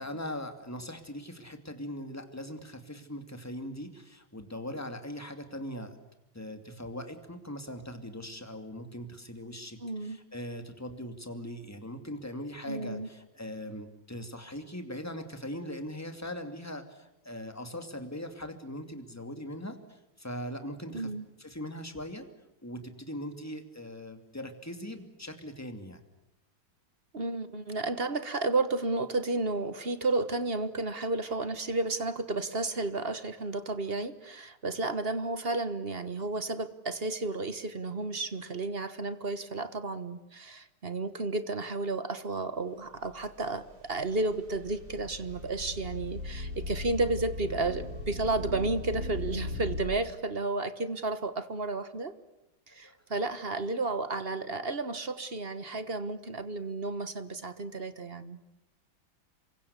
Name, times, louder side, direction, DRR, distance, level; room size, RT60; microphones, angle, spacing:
voice 1, 0.0-6.0 6.3-21.1 21.4-22.3 22.6-26.0 52.8-53.0, equal, 10° left, 7 dB, 2.5 m, -40 dB
voice 2, 9.8-10.2 12.7-13.1 20.9-21.2 27.1-52.1 52.7-58.4, right 3 dB, 35° right, 12 dB, 1.3 m, -32 dB
sound 1, 43.0-49.8, left 2 dB, 65° right, 5.4 m, -38 dB
28.0 x 23.5 x 8.3 m, 0.92 s
omnidirectional pair, 2.2 m